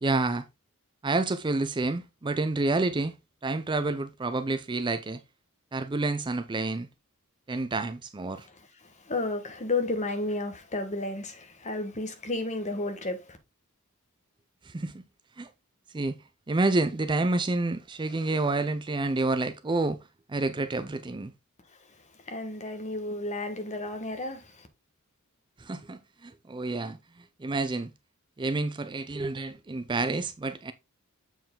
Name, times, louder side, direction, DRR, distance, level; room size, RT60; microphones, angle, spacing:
voice 1, 0.0-0.4 1.0-3.1 3.4-5.2 5.7-6.9 7.5-8.5 14.7-15.0 15.4-15.5 15.9-16.2 16.5-20.0 20.3-21.3 25.6-27.0 27.4-27.9 28.4-30.7, right 2 dB, 20° right, 0.5 m, -29 dB
voice 2, 8.4-13.4 22.3-24.7, left 2 dB, 35° left, 1.3 m, -32 dB
7.5 x 4.6 x 3.7 m
head